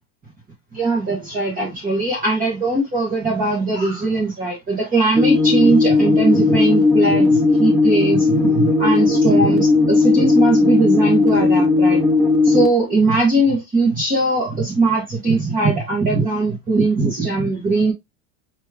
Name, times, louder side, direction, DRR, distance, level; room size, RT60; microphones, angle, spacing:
voice 1, 0.7-12.0 12.4-17.9, right 3 dB, 20° right, 1.9 m, -20 dB
sound 1, 5.2-12.7, left 3 dB, ahead, 0.3 m, -16 dB
5.3 x 3.4 x 2.4 m
supercardioid pair, 160°, 40 cm